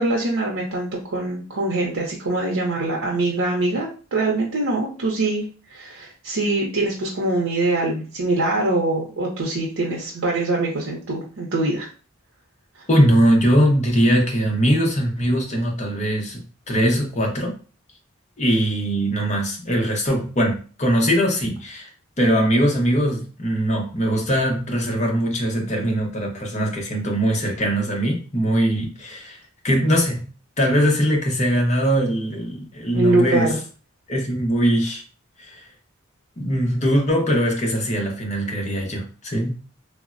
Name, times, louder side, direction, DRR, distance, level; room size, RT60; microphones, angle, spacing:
voice 1, 0.0-5.4 5.7-11.9 32.9-33.6, right 2 dB, 80° right, 0.6 m, -23 dB
voice 2, 12.9-16.4 16.7-17.5 18.4-21.9 22.2-29.4 29.6-30.2 30.6-33.5 34.1-35.0 35.4-35.6 36.4-39.6, equal, 35° left, 0.7 m, -21 dB
3.3 x 2.0 x 2.4 m
head